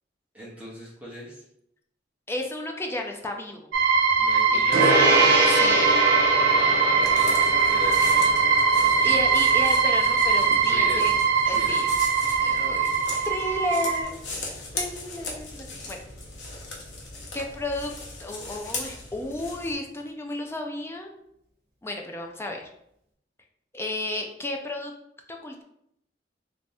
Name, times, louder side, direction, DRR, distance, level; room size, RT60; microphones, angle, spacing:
voice 1, 0.3-1.4 4.2-5.1 6.5-8.5 8.8-9.2 10.6-11.1 11.4-11.8 16.7-16.9, left 1 dB, 10° right, -9 dB, 0.9 m, -39 dB
voice 2, 2.3-3.7 4.5-4.6 5.5-5.9 9.0-11.1 11.5-11.9 12.4-13.0 13.2-14.2 14.8-16.0 17.3-17.9 18.2-21.1 21.8-22.7 23.7-24.9 25.3-25.6, left 2 dB, 15° left, 2 dB, 0.4 m, -32 dB
sound 1, 3.7-14.0, right 5 dB, 80° right, 0.5 m, -21 dB
Gong, 4.7-14.4, right 1 dB, 60° right, 1.0 m, -27 dB
sound 2, 7.0-19.7, left 3 dB, 75° left, 0.9 m, -38 dB
3.3 x 2.7 x 3.3 m, 0.75 s
head